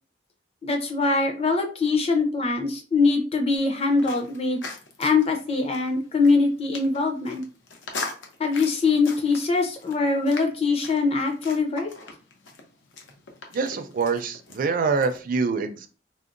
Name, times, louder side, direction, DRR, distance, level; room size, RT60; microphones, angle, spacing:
voice 1, 0.6-4.6 5.0-7.4 8.4-11.9, left 4 dB, 35° left, 3 dB, 0.6 m, -23 dB
sound 1, 3.6-15.2, left 3 dB, 85° left, 0.6 m, -41 dB
voice 2, 13.5-15.9, right 4 dB, 50° right, 8 dB, 0.4 m, -25 dB
3.6 x 2.0 x 2.5 m, 0.35 s
head